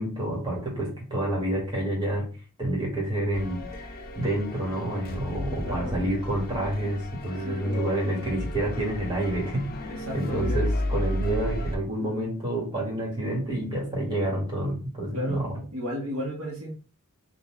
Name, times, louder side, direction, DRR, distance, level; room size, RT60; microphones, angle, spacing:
voice 1, 0.0-2.3 2.6-15.6, right 1 dB, 20° right, -3 dB, 1.5 m, -29 dB
sound 1, 3.3-11.8, left 1 dB, 45° left, 0.4 m, -33 dB
voice 2, 5.6-6.1 7.4-7.8 9.8-10.6 12.0-12.3 15.1-15.4 15.7-16.7, equal, 75° right, -2 dB, 1.2 m, -34 dB
3.8 x 2.6 x 3.1 m, 0.36 s
head